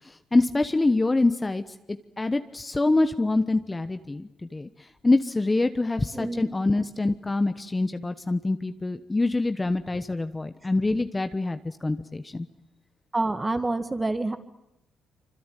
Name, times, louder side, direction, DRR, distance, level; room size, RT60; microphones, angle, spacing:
voice 1, 0.1-1.6 2.2-4.7 5.0-12.5, left 2 dB, 20° left, 9 dB, 1.1 m, -25 dB
voice 2, 6.1-6.5 13.1-14.4, right 2 dB, 20° right, 9 dB, 2.2 m, -27 dB
25.5 x 25.5 x 9.2 m, 0.86 s
cardioid pair, 90°, 0 cm